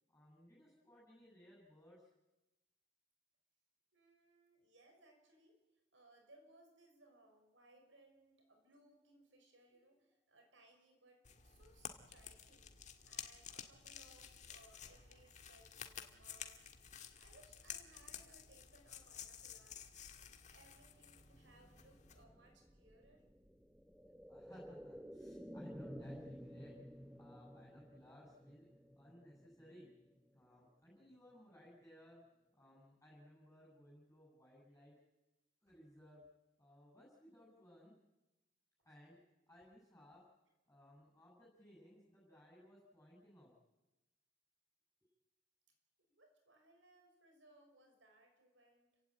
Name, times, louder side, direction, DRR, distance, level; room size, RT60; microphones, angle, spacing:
voice 1, 0.1-2.1 24.3-26.8 27.2-28.7 29.0-29.9 30.3-32.2 32.6-34.9 35.6-36.3 36.6-37.9 38.8-39.2 39.5-40.2 40.7-43.5, equal, 15° left, -4 dB, 7.4 m, -61 dB
voice 2, 3.9-5.6 5.9-16.7 17.2-19.8 20.2-23.2 46.1-48.9, right 1 dB, 80° right, 4 dB, 5.6 m, -67 dB
sound 1, 11.2-22.2, left 8 dB, 40° left, 1.8 m, -53 dB
sound 2, 21.0-30.8 31.1-31.2, equal, 5° right, 1.0 m, -54 dB
29.5 x 16.0 x 9.0 m, 1.1 s
head